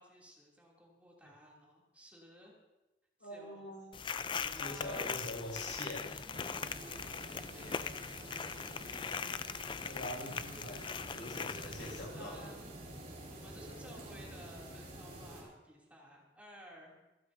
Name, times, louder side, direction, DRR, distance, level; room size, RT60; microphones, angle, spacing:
voice 1, 0.0-2.5 3.2-3.7 4.6-5.2 6.1-6.7 7.5-8.1 9.0-9.5 10.4-10.9 12.1-12.7 13.3-16.9, equal, 10° right, -4 dB, 3.0 m, -56 dB
voice 2, 3.2-6.2 7.0-7.6 9.8-10.8 11.1-12.5 13.8-14.0, left 1 dB, 85° left, -1 dB, 6.3 m, -45 dB
sound 1, 3.9-12.0, left 6 dB, 30° left, 0.4 m, -40 dB
sound 2, 6.3-15.4, right 1 dB, 40° right, 5.0 m, -48 dB
25.5 x 12.5 x 2.8 m, 1.1 s
head